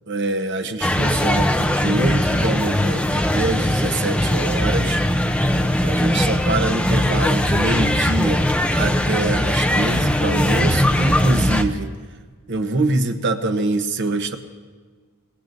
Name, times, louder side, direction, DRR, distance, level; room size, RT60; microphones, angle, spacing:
voice 1, 0.1-5.0 5.8-8.5 8.7-11.9 12.5-14.4, right 2 dB, 55° right, 7 dB, 0.9 m, -24 dB
sound 1, 0.8-11.6, left 1 dB, 5° left, 0.6 m, -20 dB
23.5 x 19.0 x 2.6 m, 1.5 s
head